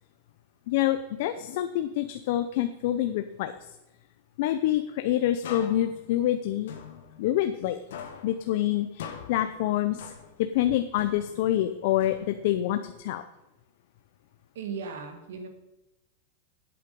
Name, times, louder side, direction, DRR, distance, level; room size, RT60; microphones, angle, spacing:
voice 1, 0.7-3.5 4.4-6.7 7.2-7.8 8.2-10.1 10.4-13.2, left 12 dB, 50° left, 9 dB, 0.6 m, -27 dB
sound 1, 5.4-7.6 7.9-10.6 11.0-12.6, left 8 dB, 85° left, 1.8 m, -44 dB
voice 2, 14.6-15.5, right 5 dB, 85° right, 5 dB, 2.0 m, -36 dB
11.5 x 8.6 x 5.3 m, 0.97 s
supercardioid pair, 170°, 0 cm